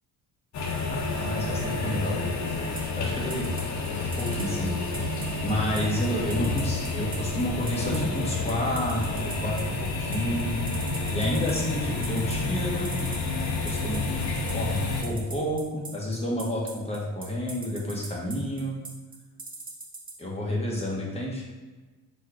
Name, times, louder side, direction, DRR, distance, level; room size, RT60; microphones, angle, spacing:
sound 1, 0.5-15.0, left 3 dB, 45° left, 0.8 m, -29 dB
voice 1, 0.9-2.7 3.0-3.5 4.2-10.6 10.9-12.9 13.6-14.0 14.4-18.7 20.2-21.4, left 1 dB, 15° left, -3 dB, 1.2 m, -30 dB
sound 2, 2.8-20.1, right 3 dB, 20° right, 0.9 m, -40 dB
4.2 x 2.4 x 4.6 m, 1.3 s
cardioid pair, 100°, 38 cm